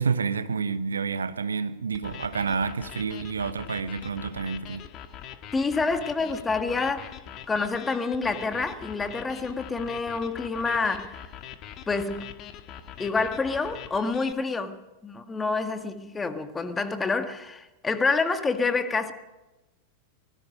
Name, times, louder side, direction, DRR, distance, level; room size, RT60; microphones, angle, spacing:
voice 1, 0.0-4.9, right 5 dB, 75° right, 1.1 m, -29 dB
sound 1, 1.9-14.3, left 9 dB, 35° left, 1.8 m, -43 dB
voice 2, 5.5-7.2 7.5-11.3 11.9-12.3 13.0-19.1, left 4 dB, 15° left, 1.8 m, -28 dB
24.5 x 20.5 x 5.3 m
figure-of-eight pair, 90°, 0 cm